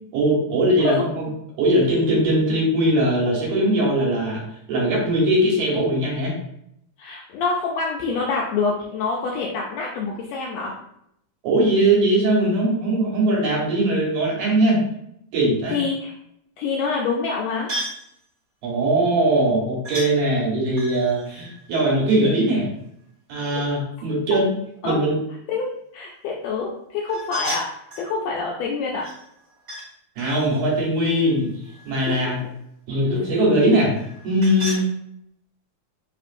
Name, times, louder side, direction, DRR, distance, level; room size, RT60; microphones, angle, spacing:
voice 1, 0.1-1.3 1.6-4.4 4.7-6.3 11.4-14.8 15.3-15.8 18.6-22.7 23.3-24.5 24.8-25.2 30.2-31.5 31.9-32.4 32.9-33.9 34.2-34.8, right 1 dB, 70° right, -4 dB, 2.6 m, -20 dB
voice 2, 7.0-10.7 15.7-16.1 16.6-17.7 24.8-25.0 25.5-25.7 25.9-27.7 28.0-29.1 32.2-32.3, left 4 dB, 80° left, -2 dB, 1.6 m, -26 dB
sound 1, 17.7-18.1 19.8-20.1 20.7-22.5 27.1-28.1 29.0-29.9 30.2-32.1 33.9-34.9, right 1 dB, 30° right, 1.3 m, -35 dB
5.0 x 3.1 x 2.6 m, 0.76 s
omnidirectional pair, 3.5 m